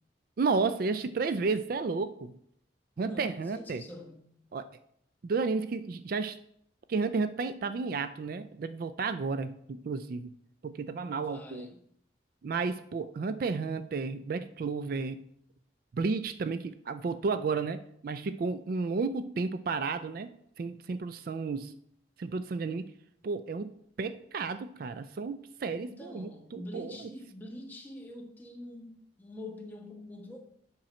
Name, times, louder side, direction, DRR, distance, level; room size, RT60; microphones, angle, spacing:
voice 1, 0.4-2.3 3.0-3.8 4.5-4.7 5.2-6.4 6.9-10.3 10.6-11.7 12.4-15.2 15.9-20.3 20.6-21.7 22.2-22.9 23.2-23.7 24.0-27.1, right 4 dB, 50° right, 0.3 m, -32 dB
voice 2, 3.0-4.3 11.2-11.8 25.7-30.4, left 1 dB, 10° left, 1.1 m, -45 dB
7.6 x 6.0 x 4.3 m
head